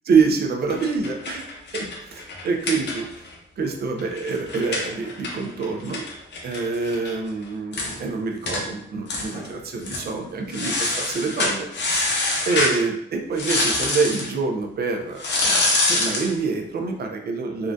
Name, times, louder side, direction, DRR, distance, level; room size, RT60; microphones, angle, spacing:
voice 1, 0.1-1.5 1.7-3.1 3.6-6.0 6.4-12.1 12.5-17.7, right 4 dB, 55° right, 3 dB, 0.4 m, -26 dB
sound 1, 0.7-3.3 3.6-3.7 4.0-7.1 7.4-7.5 7.7-8.0 8.5-8.6 9.1-9.5 9.8-10.1 10.5-12.8 13.4-14.3 15.2-16.3, left 2 dB, 65° left, 0.6 m, -25 dB
3.6 x 2.2 x 2.5 m, 0.79 s
wide cardioid pair, 170°, 19 cm